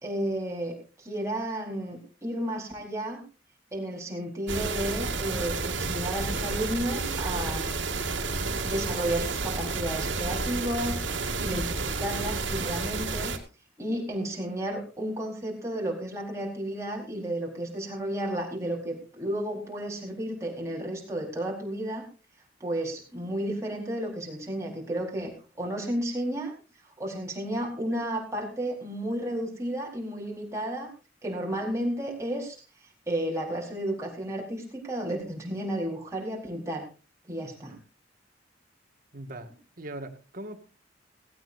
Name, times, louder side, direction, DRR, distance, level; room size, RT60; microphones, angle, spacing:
voice 1, 0.0-3.2 3.7-7.7 8.6-11.0 11.4-13.3 13.8-22.0 22.6-25.3 25.6-26.5 27.0-30.9 31.2-32.6 33.1-36.9 37.3-37.8, right 1 dB, 15° right, -1 dB, 4.5 m, -32 dB
sound 1, 4.5-13.4, right 3 dB, 85° right, 2.4 m, -31 dB
voice 2, 39.1-39.5 39.8-40.6, right 1 dB, 50° right, 7 dB, 2.1 m, -40 dB
17.0 x 16.5 x 2.7 m, 0.33 s
head